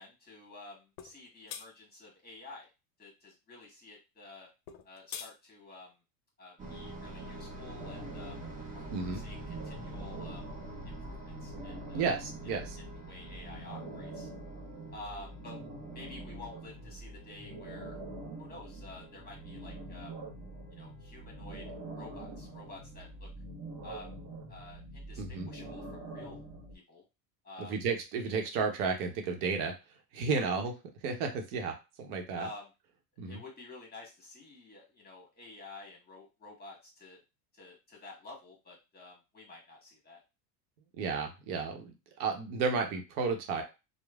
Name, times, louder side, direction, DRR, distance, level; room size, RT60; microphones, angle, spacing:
voice 1, 0.0-2.7 3.0-4.5 4.8-6.0 6.4-8.4 8.7-10.5 10.8-12.1 13.1-14.3 14.9-15.6 15.9-18.0 18.4-20.2 20.7-23.3 23.8-24.2 24.5-26.4 26.7-27.0 27.4-27.7 30.3-30.5 32.3-32.7 33.2-37.2 37.5-40.2, left 2 dB, 20° left, -1 dB, 1.5 m, -50 dB
sound 1, 1.0-1.1 1.5-1.7 4.7-5.3, left 9 dB, 60° left, 0.5 m, -42 dB
sound 2, 6.6-23.3, right 1 dB, 15° right, 0.8 m, -48 dB
sound 3, 7.8-26.8, right 2 dB, 40° right, 1.1 m, -45 dB
voice 2, 8.9-9.2 11.9-12.8 25.2-25.5 27.7-29.7 30.1-30.7 31.0-32.5 33.2-33.4 41.0-43.6, right 5 dB, 65° right, 4 dB, 0.9 m, -33 dB
3.1 x 2.1 x 2.3 m, 0.27 s
hypercardioid pair, 90°, 48 cm